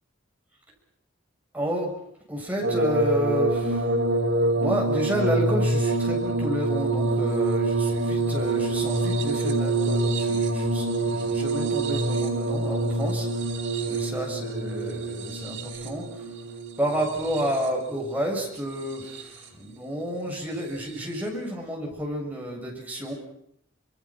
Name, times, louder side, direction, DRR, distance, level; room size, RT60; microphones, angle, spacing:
voice 1, 1.5-1.9 2.3-3.9 4.6-13.3 13.9-16.1 16.8-23.1, equal, 10° right, -2 dB, 7.3 m, -30 dB
sound 1, 2.6-17.9 18.7-19.4 20.9-21.0, right 2 dB, 75° right, 5.4 m, -26 dB
29.5 x 27.5 x 6.2 m, 0.71 s
head